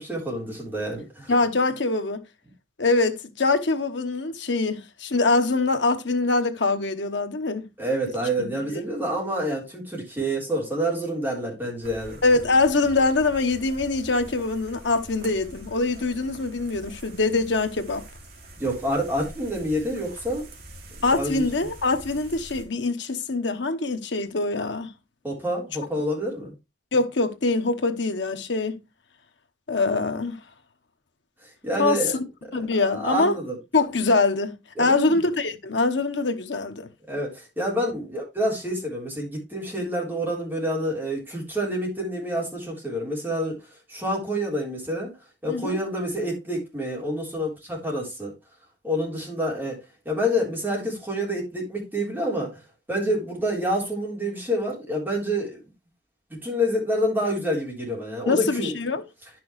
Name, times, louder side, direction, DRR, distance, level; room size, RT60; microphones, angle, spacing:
voice 1, 0.0-1.3 7.8-12.2 18.6-20.4 21.1-21.4 25.2-26.5 31.4-32.1 32.8-33.6 34.8-35.2 37.1-43.6 43.9-45.2 45.4-48.3 48.8-52.6 52.9-55.6 56.4-58.7, equal, 10° right, 3.8 m, -28 dB
voice 2, 1.3-2.2 2.8-7.7 8.4-8.8 12.2-18.0 21.0-24.9 26.9-28.8 29.7-30.4 31.8-32.0 32.5-33.4 33.7-36.9 45.5-45.8 58.3-59.0, left 3 dB, 75° left, 1.0 m, -24 dB
sound 1, 11.8-22.7, right 1 dB, 55° right, 2.3 m, -44 dB
10.5 x 6.1 x 3.1 m
head